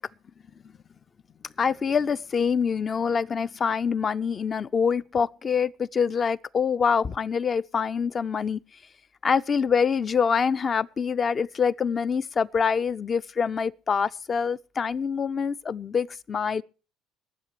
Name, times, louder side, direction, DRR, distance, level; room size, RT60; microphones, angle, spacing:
voice 1, 1.6-8.6 9.2-16.6, left 6 dB, 35° left, 0.6 m, -25 dB
20.5 x 7.9 x 4.9 m
figure-of-eight pair, 55°, 0 cm